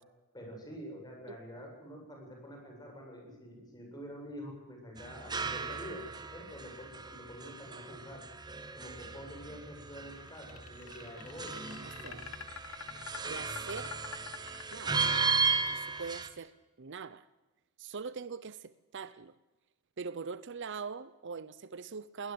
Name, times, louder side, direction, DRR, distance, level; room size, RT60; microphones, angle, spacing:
voice 1, 0.3-8.2 8.7-12.2, equal, 20° left, 7.9 m, -47 dB
sound 1, 5.0-16.3, right 4 dB, 20° right, 1.4 m, -36 dB
sound 2, 10.3-15.3, left 7 dB, 75° left, 1.2 m, -46 dB
voice 2, 11.8-12.3 13.3-13.9 14.7-15.0 15.7-17.2 17.8-19.3 20.0-22.3, right 5 dB, 55° right, 0.7 m, -42 dB
21.0 x 19.0 x 7.9 m
head